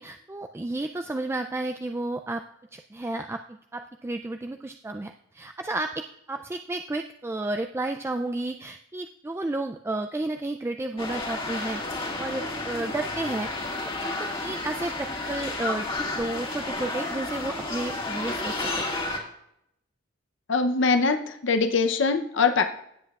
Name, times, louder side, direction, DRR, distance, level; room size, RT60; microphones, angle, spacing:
voice 1, 0.0-2.4 2.7-11.8 12.2-13.5 14.0-18.7, right 2 dB, 15° right, 5 dB, 0.3 m, -32 dB
sound 1, 11.0-19.2, left 2 dB, 25° left, 1.9 m, -31 dB
voice 2, 20.5-22.6, left 4 dB, 65° left, 7 dB, 0.7 m, -22 dB
17.0 x 7.9 x 2.4 m, 0.75 s
head